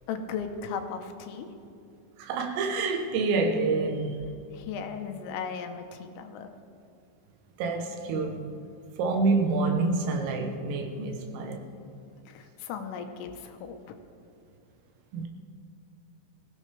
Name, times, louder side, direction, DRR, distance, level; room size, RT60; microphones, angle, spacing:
voice 1, 0.1-1.5 4.5-6.5 12.3-14.0, left 6 dB, 85° left, 6 dB, 3.6 m, -36 dB
voice 2, 2.2-4.3 7.6-8.5 9.0-11.7 15.1-15.3, right 3 dB, 90° right, 3 dB, 3.7 m, -27 dB
24.0 x 16.0 x 3.4 m, 2.5 s
omnidirectional pair, 5.7 m